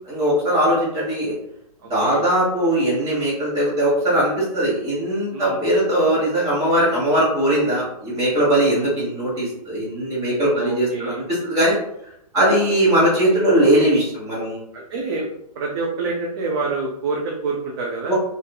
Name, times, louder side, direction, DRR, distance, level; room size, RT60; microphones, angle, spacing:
voice 1, 0.1-1.3 1.9-11.7 12.3-14.6 18.1-18.2, right 1 dB, 15° right, -7 dB, 1.4 m, -20 dB
voice 2, 1.8-2.2 5.3-5.6 8.6-8.9 10.5-11.2 12.5-12.7 14.7-15.3 15.6-18.1, right 3 dB, 40° right, -2 dB, 0.5 m, -27 dB
2.7 x 2.5 x 2.3 m, 0.75 s
hypercardioid pair, 150°, 20 cm